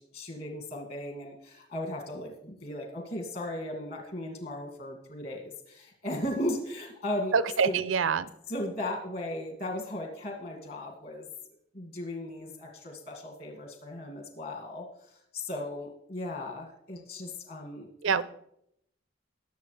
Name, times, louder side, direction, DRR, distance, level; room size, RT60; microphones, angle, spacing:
voice 1, 0.0-7.3 7.6-7.8 8.5-11.3 11.7-14.9 15.3-18.2, left 1 dB, 50° left, 2 dB, 2.1 m, -36 dB
voice 2, 7.3-8.3 18.0-18.2, right 6 dB, 75° right, 16 dB, 0.5 m, -25 dB
19.5 x 7.1 x 3.3 m, 0.73 s
head